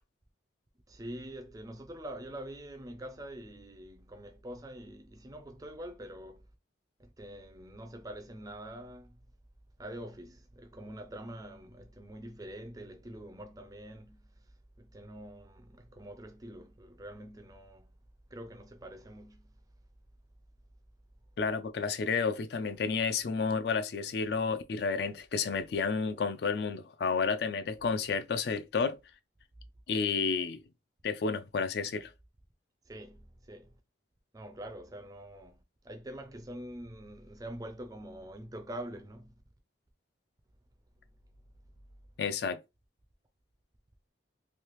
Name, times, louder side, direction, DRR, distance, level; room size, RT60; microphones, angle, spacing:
voice 1, 0.9-6.5 7.0-9.2 9.8-14.3 14.8-17.9 18.3-19.5 32.9-33.7 34.3-39.3, right 1 dB, 20° right, 0.4 m, -45 dB
voice 2, 21.4-29.0 29.9-30.6 31.0-32.1 42.2-42.6, left 5 dB, 55° left, 0.4 m, -31 dB
3.2 x 2.6 x 3.0 m
head